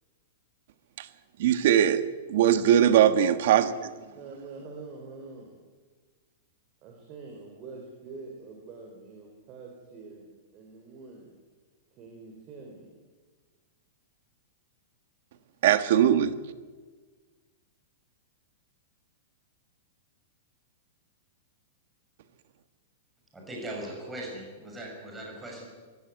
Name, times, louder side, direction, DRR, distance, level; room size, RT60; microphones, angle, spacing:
voice 1, 1.4-3.9 15.6-16.3, right 10 dB, 60° right, 11 dB, 1.6 m, -21 dB
voice 2, 4.1-5.6 6.8-10.3 10.5-11.3 12.0-13.0, right 4 dB, 30° right, 1 dB, 3.8 m, -45 dB
voice 3, 23.3-25.7, right 1 dB, 10° right, -2 dB, 6.3 m, -39 dB
24.0 x 15.0 x 9.5 m, 1.4 s
supercardioid pair, 155°, 0 cm